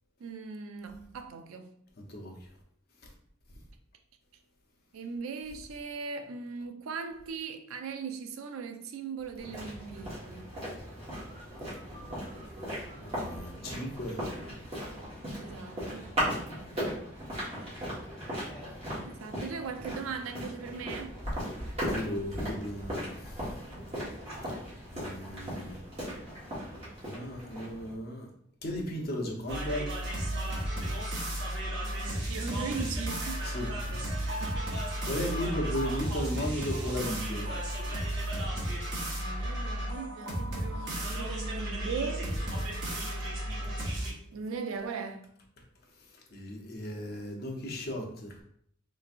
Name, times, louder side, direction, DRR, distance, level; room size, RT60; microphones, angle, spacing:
voice 1, 0.2-1.7 4.9-10.5 15.4-16.2 19.0-21.2 31.8-33.5 34.4-34.8 35.1-35.6 39.2-42.3 44.3-45.2, right 5 dB, 90° right, 0.4 m, -39 dB
voice 2, 2.1-2.5 3.0-3.1 13.1-14.3 21.8-23.6 24.9-25.8 27.0-28.3 28.6-29.9 33.4-33.7 34.0-34.7 35.0-37.8 45.9-48.4, equal, 50° left, 0.7 m, -36 dB
sound 1, 9.4-27.9, equal, 30° right, 1.4 m, -38 dB
sound 2, 29.5-44.1, right 1 dB, 55° right, 0.9 m, -33 dB
3.3 x 3.0 x 2.5 m
head